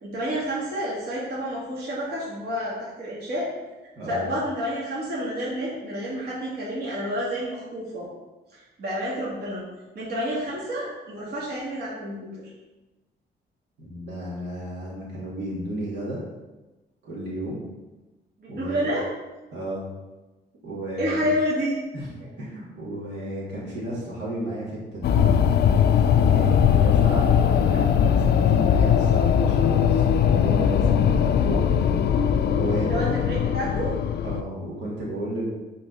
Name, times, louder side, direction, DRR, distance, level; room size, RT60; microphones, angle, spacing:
voice 1, 0.0-3.5 4.1-8.1 8.5-9.6 9.9-12.4 18.4-19.1 21.0-21.8 32.8-33.9, equal, 60° right, -7 dB, 2.8 m, -29 dB
voice 2, 4.0-4.3 13.8-16.2 17.0-17.6 18.5-18.9 19.5-19.8 20.6-21.3 21.9-25.3 26.3-31.6 32.5-32.9 34.2-35.5, right 1 dB, 75° right, -6 dB, 2.9 m, -32 dB
sound 1, 25.0-34.4, left 8 dB, 65° left, 0.5 m, -20 dB
11.0 x 4.3 x 4.2 m, 1.1 s
cardioid pair, 135°, 18 cm